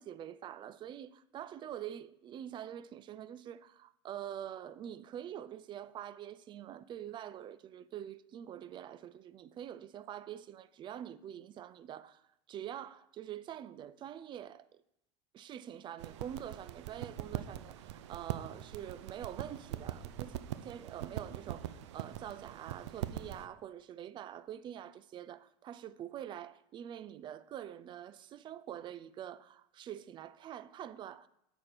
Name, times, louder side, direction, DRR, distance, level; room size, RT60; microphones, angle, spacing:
voice 1, 0.0-14.7 15.3-20.3 20.6-31.3, right 10 dB, 35° right, 0.4 m, -45 dB
sound 1, 16.0-23.5, right 12 dB, 85° right, 0.5 m, -42 dB
8.7 x 4.3 x 5.1 m
supercardioid pair, 110°, 15 cm